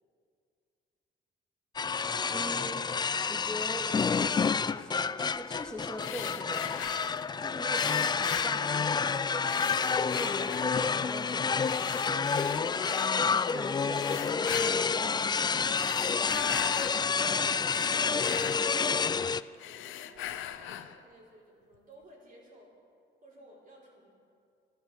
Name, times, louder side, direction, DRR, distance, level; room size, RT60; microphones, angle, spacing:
sound 1, 1.8-19.4, left 5 dB, 20° left, 0.3 m, -29 dB
voice 1, 2.3-2.9 3.3-3.9 4.6-6.8 7.4-12.3 13.2-15.2 17.2-17.5, equal, 5° left, 0 dB, 2.3 m, -41 dB
sound 2, 6.0-7.3 7.7-9.1 9.5-11.0 11.6-13.2 13.9-15.0 15.6-17.0 17.4-19.2 19.5-21.0, left 12 dB, 85° left, 0.7 m, -40 dB
voice 2, 16.6-22.7 23.2-24.1, right 1 dB, 45° right, -3 dB, 4.8 m, -55 dB
12.5 x 12.5 x 7.8 m, 2.4 s
cardioid pair, 90°, 20 cm